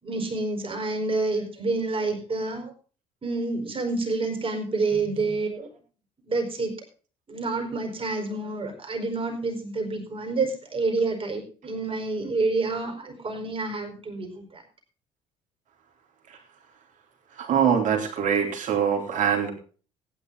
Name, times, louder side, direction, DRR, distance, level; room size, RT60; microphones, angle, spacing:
voice 1, 0.0-2.7 3.2-5.7 6.2-6.7 7.3-14.6, right 3 dB, 35° right, 4 dB, 4.8 m, -28 dB
voice 2, 4.9-5.3 17.4-19.5, right 7 dB, 55° right, 1 dB, 3.9 m, -24 dB
16.5 x 9.9 x 4.0 m, 0.38 s
hypercardioid pair, 50°, 16 cm